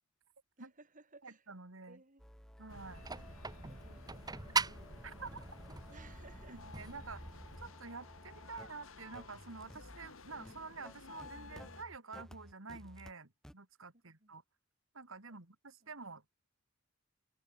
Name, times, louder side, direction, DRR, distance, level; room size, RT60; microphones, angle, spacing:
voice 1, 0.6-1.5 1.9-2.2 3.6-5.3 5.9-6.6 7.0-7.3 13.9-14.4 15.3-15.4 15.8-16.0, right 3 dB, 40° right, 4.1 m, -61 dB
voice 2, 1.2-2.0 2.6-3.0 5.0-5.4 6.5-7.2 7.6-14.4 14.9-16.3, right 4 dB, 75° right, 2.5 m, -49 dB
sound 1, 2.2-13.1 13.4-13.5, equal, 5° left, 1.1 m, -56 dB
sound 2, 2.7-11.8, left 3 dB, 80° left, 2.7 m, -55 dB
sound 3, 2.7-7.7, right 4 dB, 20° right, 1.5 m, -41 dB
open air
head